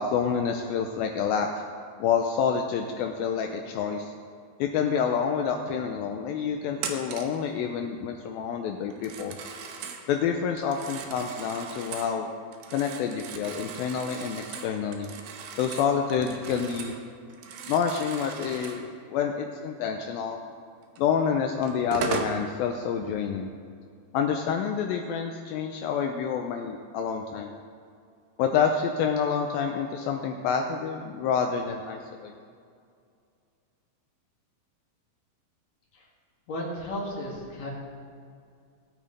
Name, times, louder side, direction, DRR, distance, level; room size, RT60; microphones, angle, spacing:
voice 1, 0.0-1.6 2.0-4.1 4.6-9.4 10.1-12.3 12.7-15.1 15.6-16.9 17.7-20.4 21.0-23.5 24.1-27.5 28.4-32.3, left 7 dB, 80° left, 3 dB, 2.3 m, -28 dB
Telephone, 6.8-7.4 8.9-10.0 10.6-12.1 12.5-17.0 17.3-18.9 21.0-21.1 21.6-22.4, right 5 dB, 70° right, 2.4 m, -38 dB
voice 2, 36.5-37.7, left 1 dB, 50° left, -4 dB, 3.3 m, -34 dB
19.5 x 8.7 x 3.3 m, 2.3 s
omnidirectional pair, 4.5 m